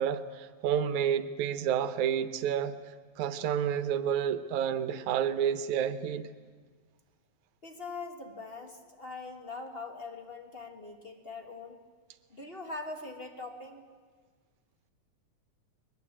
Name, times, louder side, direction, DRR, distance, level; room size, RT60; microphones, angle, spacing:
voice 1, 0.0-2.8 3.2-6.3, right 8 dB, 75° right, 2.3 m, -30 dB
voice 2, 7.6-11.8 12.3-13.8, left 3 dB, 30° left, 1.2 m, -42 dB
21.5 x 21.0 x 8.6 m
omnidirectional pair, 3.4 m